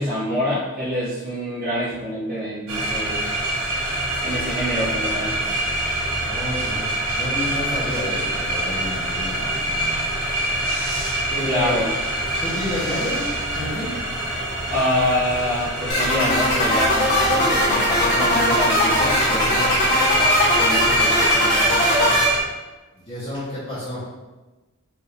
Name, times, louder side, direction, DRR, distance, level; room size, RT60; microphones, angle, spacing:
voice 1, 0.0-3.5 4.2-5.4 11.4-11.9 14.7-19.6 20.6-22.0, left 1 dB, 45° right, -9 dB, 1.4 m, -26 dB
sound 1, 2.7-22.4, right 1 dB, 90° right, 1.5 m, -25 dB
voice 2, 6.2-10.0 11.3-11.9 12.4-14.0 19.3-19.7 22.9-24.0, left 1 dB, 30° left, -10 dB, 1.0 m, -30 dB
sound 2, 15.9-22.3, left 1 dB, 50° left, 1.4 m, -20 dB
4.9 x 2.7 x 3.3 m, 1.2 s
head